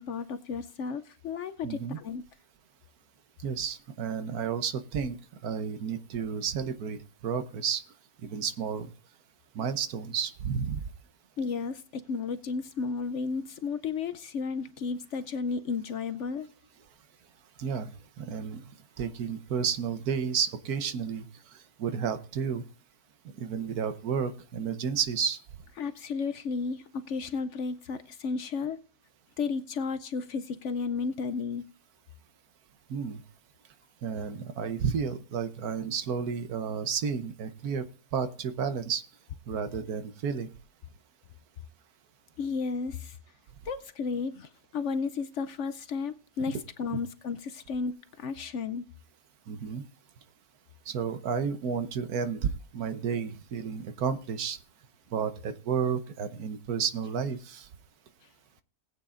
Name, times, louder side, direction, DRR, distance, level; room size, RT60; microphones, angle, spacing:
voice 1, 0.0-2.2 11.4-16.5 25.8-28.8 29.4-31.6 42.4-43.2 43.6-48.8, left 5 dB, 60° left, 0.8 m, -33 dB
voice 2, 1.6-2.0 3.4-5.2 5.4-7.8 8.2-8.9 9.5-10.8 17.6-17.9 18.2-18.6 19.0-21.3 21.8-22.6 23.4-25.4 32.9-33.2 34.0-37.9 38.1-39.0 39.5-40.5 49.5-49.8 50.9-54.6 55.1-57.7, right 6 dB, 80° right, 1.4 m, -31 dB
19.5 x 8.7 x 2.5 m
omnidirectional pair, 1.6 m